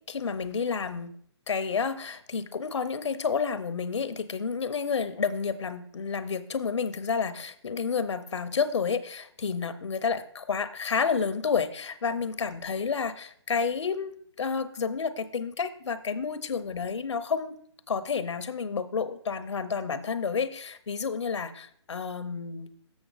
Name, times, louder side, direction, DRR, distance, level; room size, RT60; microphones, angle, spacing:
voice 1, 0.1-1.1 1.5-17.6 17.9-22.7, left 5 dB, 85° left, 11 dB, 0.8 m, -30 dB
7.1 x 6.7 x 3.9 m, 0.63 s
hypercardioid pair, 165°, 15 cm